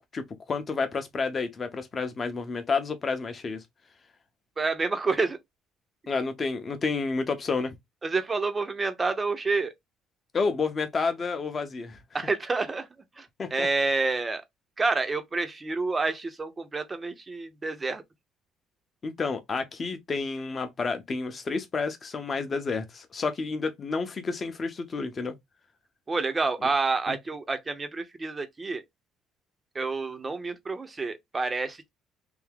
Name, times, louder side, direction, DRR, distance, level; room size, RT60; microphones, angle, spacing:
voice 1, 0.0-3.6 6.1-7.8 10.3-12.0 13.4-13.7 19.0-25.3 27.1-27.2, left 4 dB, 25° left, 0.7 m, -30 dB
voice 2, 4.6-5.4 8.0-9.7 12.1-12.9 13.2-14.4 14.8-18.0 26.1-28.8 29.7-31.9, right 3 dB, 15° right, 0.6 m, -28 dB
3.4 x 2.7 x 3.6 m
cardioid pair, 175°, 0 cm